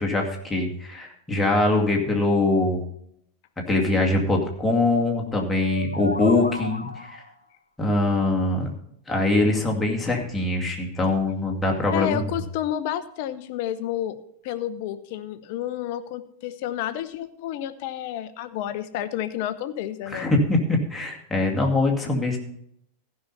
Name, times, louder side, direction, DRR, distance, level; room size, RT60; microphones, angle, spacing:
voice 1, 0.0-2.8 3.7-7.2 7.8-8.7 9.1-12.2 20.1-22.4, left 2 dB, 10° left, 0 dB, 2.2 m, -23 dB
sound 1, 5.5-7.4, left 1 dB, 80° left, 0.8 m, -34 dB
voice 2, 11.9-20.3, left 11 dB, 50° left, 12 dB, 0.7 m, -30 dB
15.0 x 5.6 x 5.5 m, 0.72 s
figure-of-eight pair, 90°, 0 cm